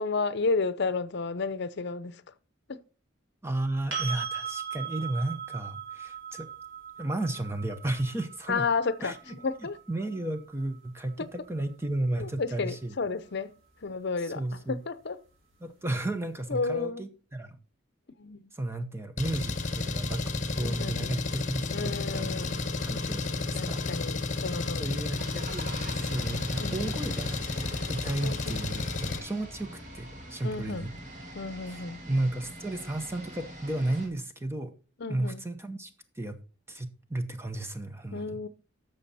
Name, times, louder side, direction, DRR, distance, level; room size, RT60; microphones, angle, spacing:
voice 1, 0.0-2.2 2.7-2.8 8.5-9.8 11.2-11.3 12.2-13.5 13.8-15.2 16.5-17.0 18.2-18.5 20.6-21.2 21.7-22.6 23.5-25.0 26.6-26.8 28.2-28.6 30.4-30.9 31.3-32.0 35.0-35.5 38.1-38.5, left 4 dB, 60° left, 0.7 m, -32 dB
voice 2, 3.4-6.5 7.0-8.7 9.0-9.3 9.9-12.9 14.2-14.8 15.6-17.6 18.5-20.2 20.6-23.8 24.8-30.9 31.7-34.7 35.1-36.4 36.7-38.5, right 1 dB, 15° right, 0.9 m, -34 dB
sound 1, 3.9-11.7 14.5-14.6, right 7 dB, 80° right, 4.1 m, -39 dB
Engine, 19.2-29.2, left 3 dB, 40° left, 1.2 m, -32 dB
sound 2, 25.2-34.1, right 1 dB, 40° right, 3.0 m, -44 dB
11.5 x 6.9 x 4.1 m
head